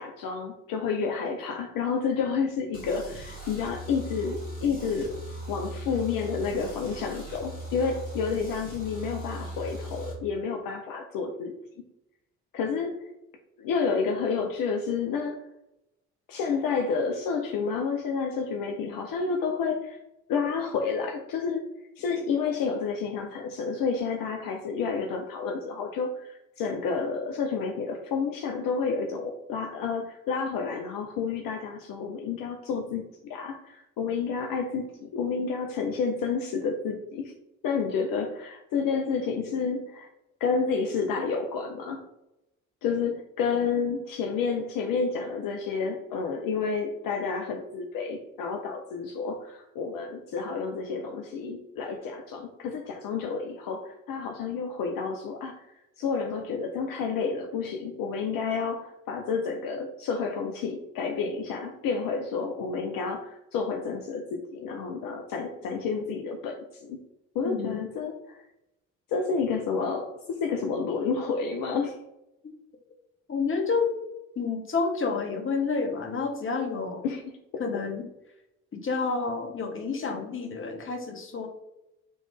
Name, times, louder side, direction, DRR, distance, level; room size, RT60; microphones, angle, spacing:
voice 1, 0.0-5.2 5.5-11.5 12.5-13.1 13.6-15.4 16.3-20.0 20.3-21.6 22.0-37.3 37.6-40.1 40.4-42.0 42.8-67.0 67.3-68.4 69.1-72.0 77.0-77.2, left 5 dB, 55° left, 3 dB, 0.6 m, -30 dB
sound 1, 2.7-10.1, right 1 dB, 85° left, 1.4 m, -39 dB
voice 2, 67.4-67.8 73.3-73.9 74.4-77.0 77.6-78.0 78.7-81.5, left 4 dB, 30° left, 4 dB, 1.0 m, -29 dB
4.2 x 3.1 x 3.4 m, 0.89 s
figure-of-eight pair, 45°, 41 cm